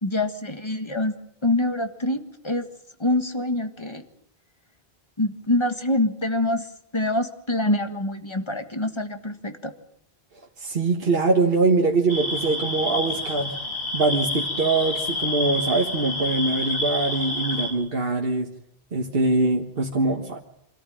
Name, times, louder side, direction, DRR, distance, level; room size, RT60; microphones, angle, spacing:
voice 1, 0.0-1.1 1.4-2.7 3.0-4.0 5.2-6.7 6.9-9.7, left 1 dB, 25° left, 7 dB, 1.7 m, -25 dB
voice 2, 10.6-13.6 13.9-18.5 18.9-20.4, right 3 dB, 65° right, 1 dB, 1.7 m, -23 dB
sound 1, 12.1-17.7, left 1 dB, 80° left, 5.5 m, -28 dB
26.0 x 14.0 x 8.8 m, 0.75 s
omnidirectional pair, 1.0 m